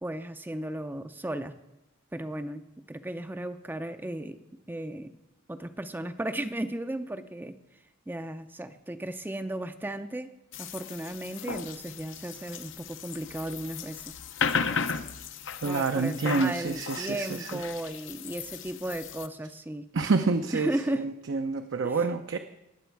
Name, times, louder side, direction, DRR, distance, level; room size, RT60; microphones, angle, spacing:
voice 1, 0.0-1.5 2.1-4.4 4.7-5.1 5.5-7.6 8.1-14.1 15.6-19.9 20.5-21.1 21.8-22.1, right 1 dB, 10° right, 9 dB, 0.5 m, -35 dB
sound 1, 10.5-19.3, left 6 dB, 65° left, 0.7 m, -35 dB
voice 2, 15.6-17.6 19.9-22.4, right 4 dB, 65° right, 6 dB, 0.6 m, -28 dB
19.0 x 7.1 x 4.6 m, 0.96 s
head